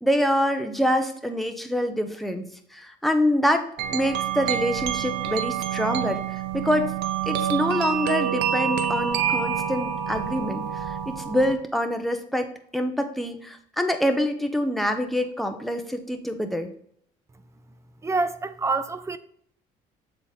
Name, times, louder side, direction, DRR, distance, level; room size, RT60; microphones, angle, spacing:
voice 1, 0.0-6.9 7.3-16.7, equal, ahead, 0.9 m, -26 dB
sound 1, 3.8-11.5, right 9 dB, 85° right, 0.7 m, -27 dB
voice 2, 18.0-19.2, right 3 dB, 15° right, 0.5 m, -26 dB
7.2 x 4.0 x 3.6 m
cardioid pair, 110°, 17 cm